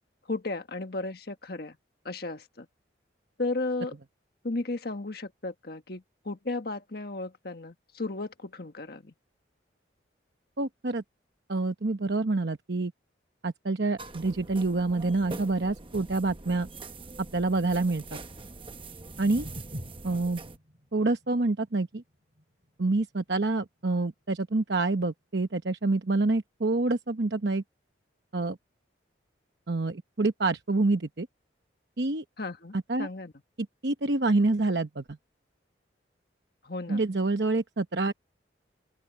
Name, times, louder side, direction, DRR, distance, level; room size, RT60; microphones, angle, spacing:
voice 1, 0.3-1.8 2.0-2.7 3.4-4.0 4.4-9.1 32.4-33.3 36.6-37.0, left 2 dB, 55° left, 1.5 m, -34 dB
voice 2, 10.6-11.0 11.5-12.9 13.4-16.7 17.3-18.2 19.2-19.5 20.0-20.4 20.9-22.0 22.8-27.6 28.3-28.6 29.7-31.3 32.0-32.2 32.7-33.1 33.8-35.0 36.9-38.1, right 2 dB, 60° right, 0.9 m, -27 dB
sound 1, 14.0-20.6, right 3 dB, 25° right, 1.0 m, -43 dB
sound 2, 18.6-24.7, equal, 45° right, 7.9 m, -47 dB
open air
head